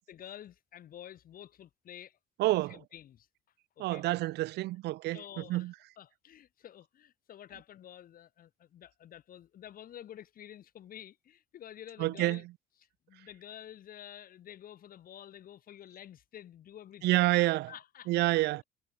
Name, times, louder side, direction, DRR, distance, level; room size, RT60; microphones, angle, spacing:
voice 1, 0.1-3.3 3.8-4.0 4.7-4.8 5.1-12.4 13.1-17.3 17.7-18.6, left 10 dB, 60° left, 7.5 m, -50 dB
voice 2, 2.4-2.8 3.8-5.7 12.0-12.4 17.0-17.7 18.1-18.6, right 18 dB, 80° right, 1.3 m, -28 dB
cardioid pair, 110°, 17 cm